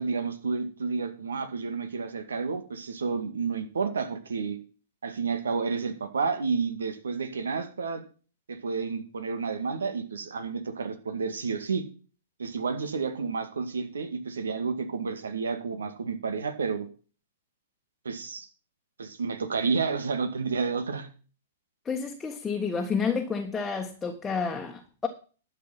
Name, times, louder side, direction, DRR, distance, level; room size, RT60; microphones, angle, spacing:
voice 1, 0.0-4.6 5.0-8.0 8.5-11.8 12.4-16.9 18.0-18.5 19.0-21.1, right 5 dB, 75° right, 2.1 m, -30 dB
voice 2, 21.8-25.1, left 5 dB, 15° left, 1.5 m, -30 dB
11.5 x 7.6 x 5.8 m
figure-of-eight pair, 110°, 0 cm